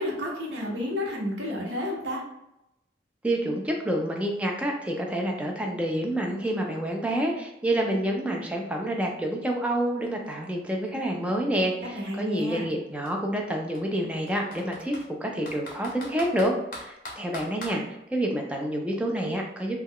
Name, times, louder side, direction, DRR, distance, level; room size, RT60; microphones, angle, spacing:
voice 1, 0.0-2.2 11.9-12.6, left 1 dB, 80° right, -2 dB, 0.8 m, -31 dB
voice 2, 3.2-17.8 18.1-19.8, right 1 dB, 5° right, 0 dB, 0.3 m, -28 dB
Computer keyboard, 9.5-9.6 9.9-11.8 12.6-12.7 13.1-13.2 13.7-15.1 15.5-17.8, left 1 dB, 50° left, 0.6 m, -41 dB
2.2 x 2.1 x 3.5 m, 0.87 s
head